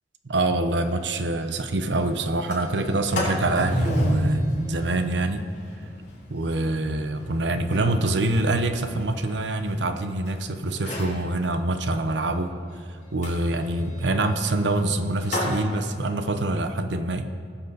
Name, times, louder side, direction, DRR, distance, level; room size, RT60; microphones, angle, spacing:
voice 1, 0.2-5.5 6.3-12.6 13.1-17.2, right 2 dB, 70° right, 8 dB, 0.8 m, -25 dB
Sliding door, 0.8-0.9 1.2-1.3 1.6-1.9 2.3-10.3 10.7-11.2 13.2-15.6, equal, 45° left, 3.7 m, -31 dB
20.0 x 7.1 x 4.1 m, 2.1 s
head